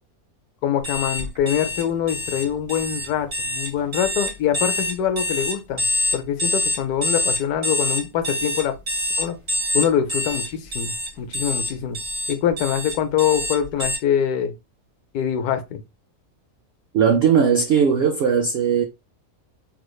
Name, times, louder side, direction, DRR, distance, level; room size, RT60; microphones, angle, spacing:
voice 1, 0.6-5.8 6.1-8.7 9.2-9.4 9.7-12.0 12.3-14.5 15.1-15.8, left 9 dB, 90° left, 1.2 m, -24 dB
sound 1, 0.8-14.0, left 1 dB, 40° right, 1.4 m, -25 dB
voice 2, 16.9-18.8, right 7 dB, 80° right, 0.5 m, -18 dB
3.3 x 3.1 x 2.2 m
omnidirectional pair, 1.6 m